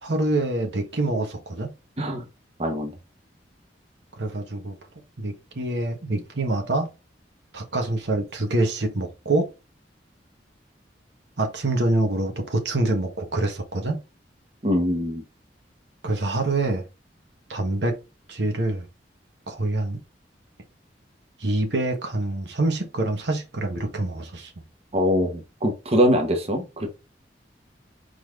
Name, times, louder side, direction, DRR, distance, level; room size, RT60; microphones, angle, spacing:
voice 1, 0.0-1.7 4.2-4.8 5.2-6.9 7.5-9.5 11.4-14.0 16.0-16.8 17.5-18.0 18.3-18.8 19.5-20.0 21.4-24.5, right 2 dB, 75° right, 1.1 m, -25 dB
voice 2, 2.6-2.9 14.6-15.2 24.9-26.9, equal, 35° right, 1.0 m, -23 dB
4.9 x 3.9 x 2.5 m
head